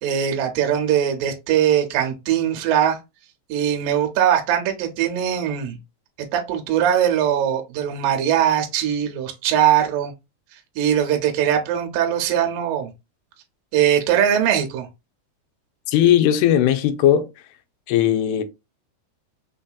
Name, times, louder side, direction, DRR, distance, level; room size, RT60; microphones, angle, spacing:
voice 1, 0.0-3.0 3.5-5.8 6.3-10.1 10.8-12.9 13.7-14.9, right 10 dB, 75° right, 2.2 m, -21 dB
voice 2, 15.9-17.3 17.9-18.4, left 11 dB, 90° left, 2.5 m, -17 dB
5.7 x 2.6 x 2.3 m
omnidirectional pair, 4.4 m